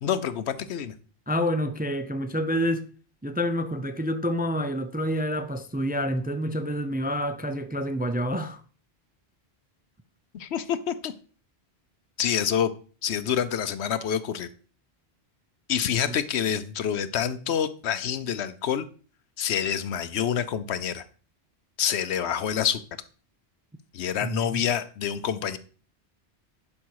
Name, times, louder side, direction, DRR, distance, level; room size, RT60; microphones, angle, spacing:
voice 1, 0.0-0.9 10.3-11.1 12.2-12.7 13.0-14.5 15.7-18.9 19.4-21.0 21.8-22.8 23.9-25.6, left 8 dB, 85° left, 1.0 m, -27 dB
voice 2, 1.3-2.9 3.2-8.6 16.1-16.2 24.2-24.6, equal, 15° right, 0.4 m, -28 dB
11.0 x 5.3 x 4.7 m
omnidirectional pair, 1.1 m